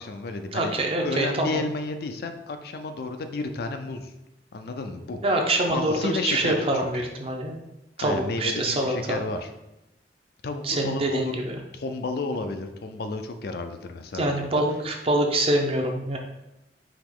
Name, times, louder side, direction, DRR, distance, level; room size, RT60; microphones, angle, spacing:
voice 1, 0.0-4.1 4.5-5.2 5.7-7.1 8.0-9.5 10.4-11.4 11.7-14.3, left 3 dB, 60° left, 7 dB, 0.4 m, -32 dB
voice 2, 0.5-1.6 5.2-7.6 8.0-9.2 10.6-11.6 14.1-16.2, right 1 dB, 35° right, 1 dB, 0.6 m, -25 dB
4.9 x 2.9 x 3.7 m, 0.93 s
head